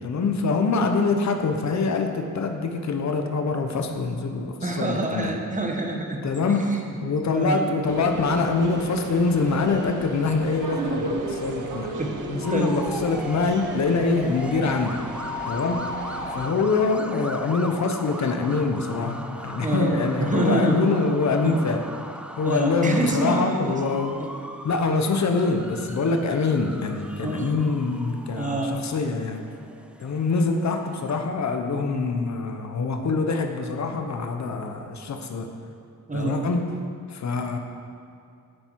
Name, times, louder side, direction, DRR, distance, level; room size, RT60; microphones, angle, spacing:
voice 1, 0.0-5.4 6.2-12.0 12.3-15.0 15.4-15.9 16.3-21.8 22.3-24.2 24.6-29.4 30.0-35.5 36.1-36.7 37.1-37.6, left 4 dB, 60° left, 5 dB, 0.9 m, -24 dB
voice 2, 4.6-6.2 6.7-6.8 7.3-7.7 12.0-12.8 14.2-14.3 19.6-19.9 20.2-20.9 21.4-21.6 22.4-23.8 24.2-24.3 27.2-27.6 28.4-28.8 36.1-36.4, right 2 dB, 25° right, 2 dB, 1.2 m, -26 dB
sound 1, 7.9-16.5, right 1 dB, 75° right, 1.0 m, -34 dB
sound 2, 12.4-31.2, right 1 dB, 5° right, 0.4 m, -40 dB
10.0 x 9.8 x 4.6 m, 2.5 s
wide cardioid pair, 140°, 32 cm